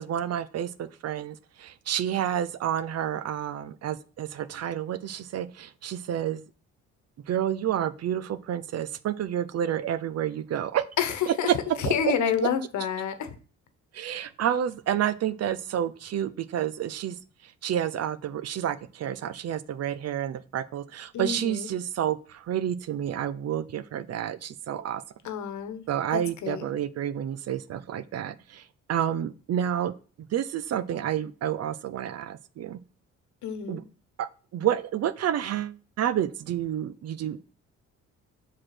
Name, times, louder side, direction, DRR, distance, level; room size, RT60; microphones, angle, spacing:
voice 1, 0.0-6.4 7.3-10.8 11.3-11.4 11.8-11.9 13.9-17.2 17.6-25.0 25.9-28.6 28.9-29.9 30.3-32.8 33.7-33.8 34.2-34.3 34.5-37.4, right 10 dB, 55° right, 15 dB, 0.6 m, -29 dB
voice 2, 11.0-11.5 11.8-13.3 21.1-21.7 25.2-25.8 26.1-26.6 33.4-33.8, left 8 dB, 70° left, 9 dB, 1.2 m, -29 dB
6.1 x 4.9 x 4.4 m, 0.38 s
cardioid pair, 90°, 30 cm